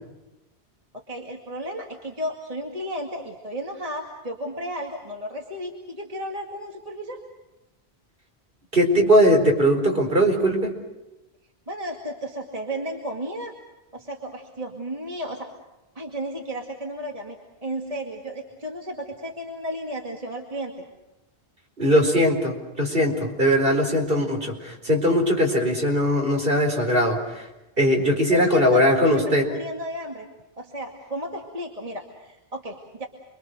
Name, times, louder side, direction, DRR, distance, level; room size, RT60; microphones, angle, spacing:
voice 1, 1.1-7.2 11.7-13.5 13.9-15.5 16.0-20.8 28.3-30.3 30.6-33.1, equal, 35° right, 1 dB, 2.3 m, -33 dB
voice 2, 8.7-10.7 21.8-27.5 27.8-29.5, equal, 55° right, 1 dB, 4.6 m, -20 dB
29.0 x 23.5 x 6.5 m, 1.0 s
omnidirectional pair, 1.1 m